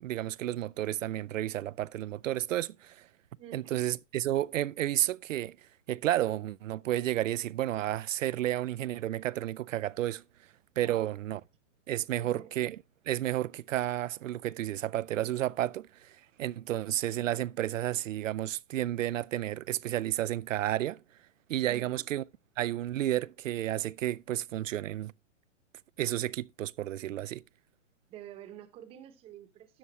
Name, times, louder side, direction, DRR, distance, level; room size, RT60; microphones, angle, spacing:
voice 1, 0.0-3.1 3.5-5.6 5.9-10.2 10.8-11.4 11.9-12.8 13.1-21.0 21.5-22.2 22.6-25.1 26.0-27.4, right 13 dB, 85° right, 0.5 m, -31 dB
voice 2, 3.4-3.7 10.8-11.1 12.2-12.5 21.6-22.0 28.1-29.8, right 10 dB, 15° right, 0.8 m, -48 dB
13.0 x 8.4 x 3.1 m
hypercardioid pair, 155°, 37 cm